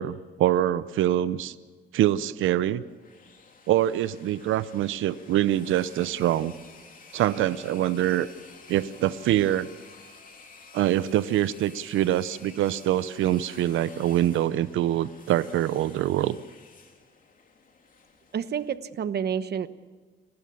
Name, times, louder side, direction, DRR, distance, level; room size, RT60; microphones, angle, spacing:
voice 1, 0.0-1.6 1.9-2.8 3.7-6.5 7.1-8.3 8.7-9.7 10.7-16.4, right 12 dB, 80° right, 15 dB, 0.8 m, -24 dB
sound 1, 2.8-18.7, left 4 dB, 45° left, 3.1 m, -51 dB
voice 2, 18.3-19.7, right 8 dB, 55° right, 13 dB, 1.1 m, -29 dB
30.0 x 12.5 x 7.1 m, 1.4 s
cardioid pair, 90°, 20 cm